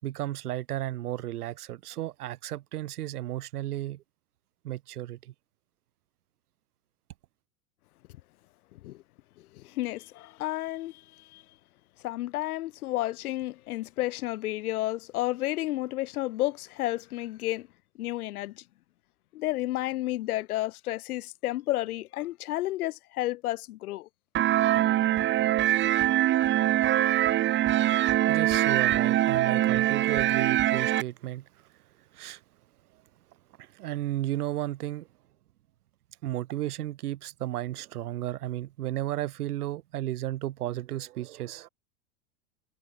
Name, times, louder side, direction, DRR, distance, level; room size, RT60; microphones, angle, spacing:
voice 1, 0.0-4.0 4.6-5.3 28.2-31.5 32.1-32.4 33.6-35.1 36.2-41.7, right 14 dB, 80° right, 4.5 m, -33 dB
voice 2, 8.7-9.0 9.4-11.4 12.0-17.7 18.0-18.6 19.3-24.1, left 16 dB, 75° left, 5.1 m, -31 dB
sound 1, 24.3-31.0, right 14 dB, 25° right, 0.9 m, -23 dB
supercardioid pair, 135°, 44 cm